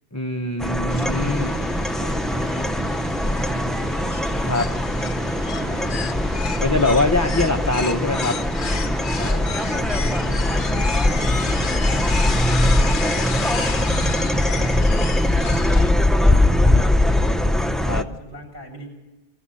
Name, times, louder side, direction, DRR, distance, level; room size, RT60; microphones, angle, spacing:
voice 1, 0.1-1.5 4.4-4.7 6.6-8.4 17.8-18.1, left 2 dB, 20° left, 4 dB, 0.7 m, -22 dB
sound 1, 0.6-18.0, left 1 dB, ahead, 0.3 m, -21 dB
sound 2, 0.9-15.9, left 5 dB, 50° left, 1.0 m, -32 dB
voice 2, 1.3-4.0 5.5-7.5 9.2-14.9 15.4-18.9, equal, 20° right, -1 dB, 7.5 m, -42 dB
sound 3, 1.4-13.9, left 1 dB, 35° left, 3.6 m, -42 dB
23.5 x 15.0 x 7.6 m, 1.1 s
omnidirectional pair, 1.1 m